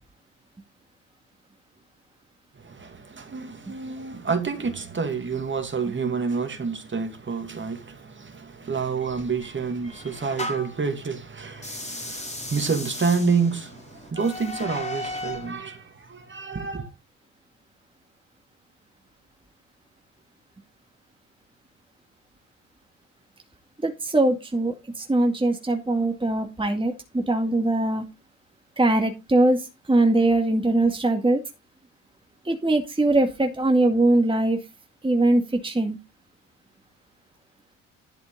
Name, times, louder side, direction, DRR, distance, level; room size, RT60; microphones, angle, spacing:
voice 1, 2.6-16.9, right 5 dB, 30° right, 2.6 m, -28 dB
sound 1, 9.0-10.8 11.5-15.5, left 1 dB, 15° left, 3.9 m, -36 dB
voice 2, 23.8-28.0 28.8-31.4 32.4-34.6 35.0-36.0, right 2 dB, 15° right, 2.2 m, -22 dB
11.5 x 6.8 x 4.0 m
hypercardioid pair, 55°, 39 cm